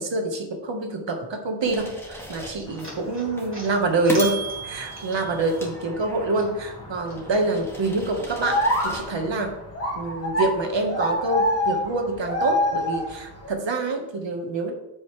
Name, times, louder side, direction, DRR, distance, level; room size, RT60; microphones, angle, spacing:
voice 1, 0.0-9.6 9.9-14.7, right 2 dB, 85° right, 4 dB, 1.5 m, -26 dB
sound 1, 1.6-2.9 3.4-3.5 4.1-6.5 6.9-9.1, right 1 dB, 5° left, 2.1 m, -37 dB
sound 2, 1.9-5.5 5.8-7.2, right 1 dB, 30° right, 2.8 m, -45 dB
sound 3, 2.7-13.5, left 1 dB, 35° left, 1.7 m, -29 dB
13.5 x 5.4 x 3.3 m, 0.92 s
wide cardioid pair, 95°, 43 cm